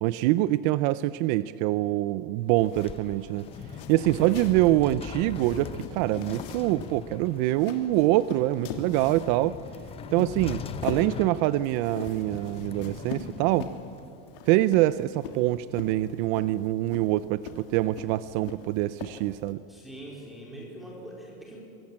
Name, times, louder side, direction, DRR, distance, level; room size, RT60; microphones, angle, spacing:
voice 1, 0.0-3.5 3.9-9.6 10.1-13.7 14.5-19.6, right 16 dB, 50° right, 15 dB, 0.6 m, -25 dB
sound 1, 2.4-14.3, left 6 dB, 20° left, 1.0 m, -41 dB
sound 2, 2.5-19.5, left 6 dB, 70° left, 3.1 m, -42 dB
voice 2, 19.7-21.6, right 1 dB, ahead, -3 dB, 4.6 m, -43 dB
23.5 x 18.0 x 8.7 m, 2.8 s
supercardioid pair, 150°, 29 cm